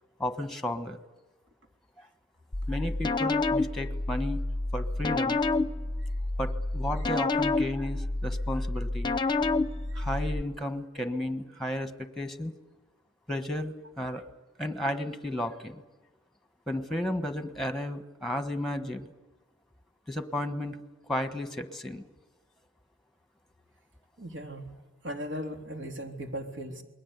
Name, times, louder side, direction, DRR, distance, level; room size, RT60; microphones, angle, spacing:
voice 1, 0.2-1.0 2.7-4.4 4.7-5.4 6.4-9.1 9.9-12.5 13.3-14.2 14.6-15.8 16.7-19.1 20.1-20.8 21.1-22.1, left 1 dB, ahead, 8 dB, 1.4 m, -33 dB
sound 1, 2.5-10.4, left 2 dB, 20° left, 0.8 m, -29 dB
voice 2, 24.2-24.7 25.0-26.8, equal, 65° right, 3 dB, 3.6 m, -37 dB
28.0 x 21.5 x 8.2 m, 1.2 s
head